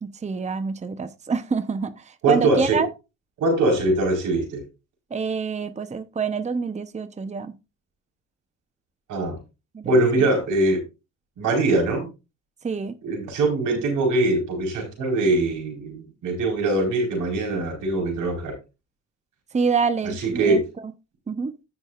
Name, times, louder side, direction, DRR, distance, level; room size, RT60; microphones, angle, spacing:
voice 1, 0.0-2.9 5.1-7.5 9.7-10.3 12.6-13.0 19.5-20.6 21.3-21.5, right 5 dB, 25° right, 0.9 m, -27 dB
voice 2, 2.2-2.8 3.4-4.6 9.1-9.4 9.8-10.8 11.4-12.1 13.0-18.5 20.2-20.6, right 2 dB, 85° right, 4.5 m, -22 dB
15.5 x 6.2 x 2.5 m
cardioid pair, 90°, 30 cm